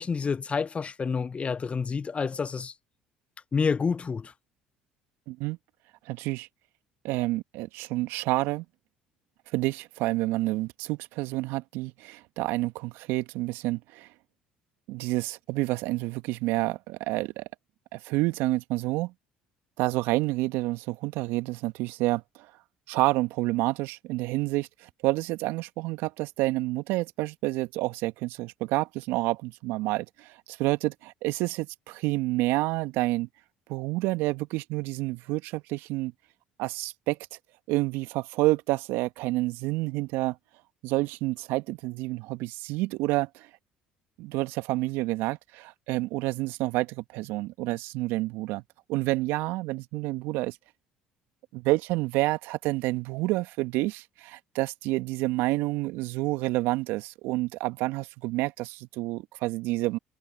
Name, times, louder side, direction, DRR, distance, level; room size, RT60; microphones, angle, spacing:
voice 1, 0.0-2.7 3.5-4.3, left 5 dB, 30° left, 0.7 m, -28 dB
voice 2, 5.3-5.6 6.0-6.5 7.0-8.6 9.5-14.1 14.9-17.4 17.9-19.1 19.8-22.5 22.9-33.3 33.7-36.1 36.6-37.2 37.7-40.4 40.8-43.5 44.2-48.6 48.9-50.6 51.5-60.0, right 20 dB, 70° right, 1.6 m, -29 dB
hypercardioid pair, 60°, 4 cm